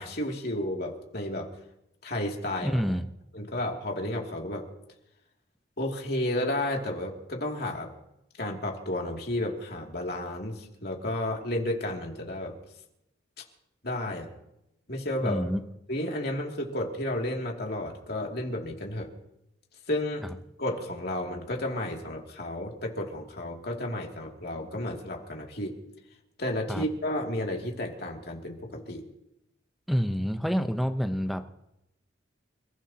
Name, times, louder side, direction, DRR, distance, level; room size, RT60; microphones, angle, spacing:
voice 1, 0.0-1.5 2.0-2.8 3.3-4.7 5.8-7.9 8.4-12.6 13.8-14.3 14.9-15.5 15.9-19.1 19.9-20.3 20.6-25.8 26.4-29.0, left 1 dB, 55° left, 0 dB, 2.7 m, -32 dB
voice 2, 2.6-3.0 15.2-15.6 26.7-26.8 29.9-31.5, equal, ahead, 7 dB, 0.8 m, -28 dB
29.5 x 15.5 x 2.9 m, 0.86 s
head